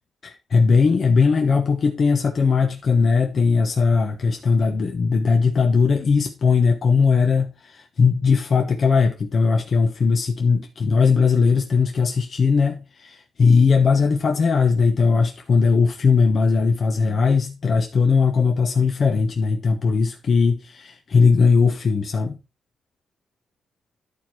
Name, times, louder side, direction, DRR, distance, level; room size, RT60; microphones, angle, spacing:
voice 1, 0.2-22.4, left 5 dB, 50° left, 1.1 m, -19 dB
11.5 x 4.5 x 4.6 m
cardioid pair, 115°, 0 cm